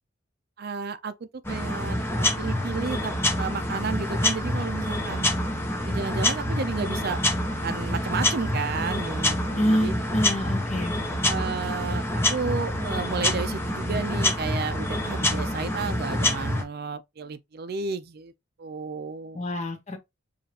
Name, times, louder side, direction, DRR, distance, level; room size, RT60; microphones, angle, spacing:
voice 1, 0.6-5.3 5.9-7.2 7.6-9.9 11.2-18.3 18.6-19.4, right 4 dB, 50° right, 0.5 m, -32 dB
sound 1, 1.4-16.6, left 1 dB, 10° left, 0.8 m, -27 dB
voice 2, 9.6-10.9 19.3-20.0, equal, 35° left, 0.9 m, -26 dB
4.9 x 2.4 x 2.9 m
head